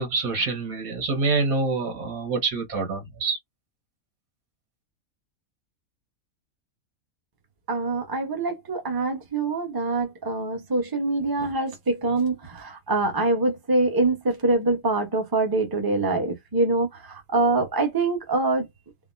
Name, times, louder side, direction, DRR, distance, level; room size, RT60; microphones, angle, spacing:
voice 1, 0.0-3.4, right 3 dB, 85° right, 1.7 m, -26 dB
voice 2, 7.7-18.7, right 2 dB, 20° right, 0.8 m, -24 dB
3.7 x 2.1 x 2.6 m
omnidirectional pair, 1.5 m